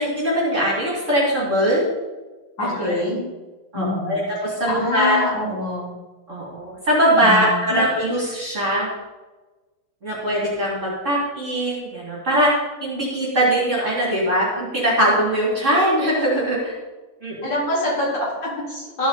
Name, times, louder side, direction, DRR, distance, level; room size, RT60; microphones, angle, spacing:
voice 1, 0.0-1.8 2.6-3.0 3.7-5.2 6.3-8.9 10.0-12.5 12.8-16.7 17.2-17.6, equal, 35° right, -6 dB, 2.9 m, -21 dB
voice 2, 2.6-3.2 3.7-4.2 4.7-5.9 7.2-7.9 17.4-19.1, left 1 dB, 60° left, -7 dB, 5.0 m, -25 dB
13.5 x 9.2 x 4.2 m, 1.2 s
omnidirectional pair, 2.2 m